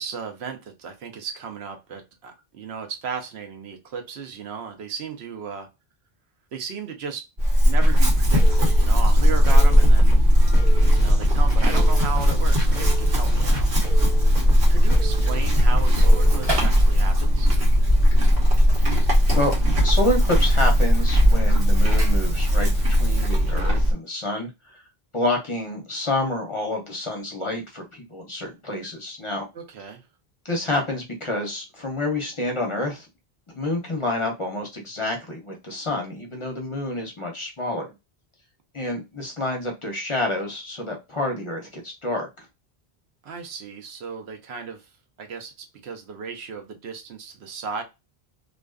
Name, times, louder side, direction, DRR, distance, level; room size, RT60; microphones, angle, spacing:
voice 1, 0.0-5.7 6.5-7.3 7.6-10.2 11.0-13.7 14.4-17.5 29.5-30.0 43.2-44.9 45.2-45.5 45.8-47.8, right 6 dB, 90° right, 0.9 m, -35 dB
Chewing mastication / Livestock farm animals working animals, 7.4-23.9, equal, 75° right, 1.2 m, -18 dB
sound 1, 7.8-16.5, right 1 dB, 50° right, 1.1 m, -32 dB
sound 2, 12.4-17.4 18.4-19.6 19.9-20.4 20.7-22.8 23.1-23.2, right 1 dB, 25° right, 0.8 m, -39 dB
voice 2, 19.8-24.8 25.1-29.5 30.4-33.1 33.5-37.9 38.7-42.5, left 1 dB, 35° left, 0.6 m, -28 dB
2.4 x 2.3 x 2.2 m
omnidirectional pair, 1.0 m